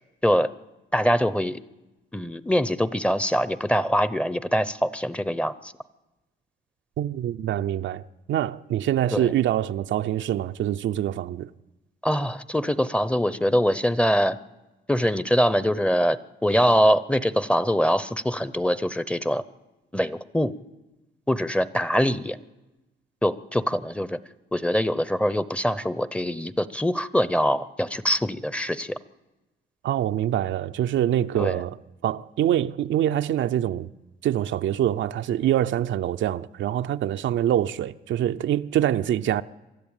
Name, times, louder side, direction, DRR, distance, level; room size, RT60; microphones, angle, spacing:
voice 1, 0.9-1.6 2.1-5.7 9.1-9.3 12.0-14.4 14.9-19.4 19.9-20.5 21.3-22.4 23.2-24.2 24.5-29.0 31.4-31.6, equal, 5° left, 0.7 m, -23 dB
voice 2, 7.0-8.0 8.3-11.5 29.8-33.9 34.2-39.4, right 11 dB, 70° right, 0.6 m, -25 dB
23.5 x 13.0 x 8.9 m
cardioid pair, 90°, 20 cm